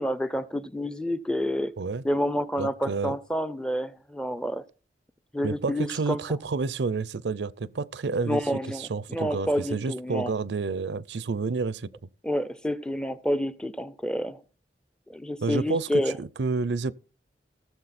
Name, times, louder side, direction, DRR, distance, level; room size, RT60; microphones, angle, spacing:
voice 1, 0.0-1.7 2.0-4.6 5.3-6.2 8.3-10.3 12.2-14.4 15.1-16.1, equal, 5° left, 0.5 m, -28 dB
voice 2, 2.6-3.2 5.4-11.9 15.4-16.9, right 4 dB, 80° right, 0.5 m, -29 dB
17.5 x 7.1 x 4.2 m
head